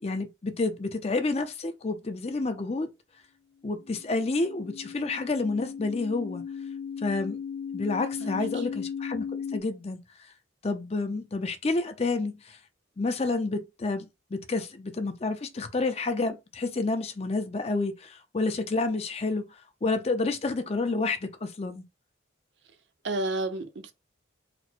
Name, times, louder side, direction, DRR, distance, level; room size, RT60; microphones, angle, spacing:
voice 1, 0.0-2.9 3.6-6.5 7.0-7.4 7.7-10.0 10.6-12.6 13.0-19.4 19.8-21.8, left 3 dB, 30° left, 0.5 m, -29 dB
sound 1, 3.8-9.6, left 7 dB, 80° left, 1.2 m, -37 dB
voice 2, 8.2-8.6 23.0-23.9, right 2 dB, 60° right, 0.6 m, -31 dB
4.1 x 2.1 x 4.3 m
head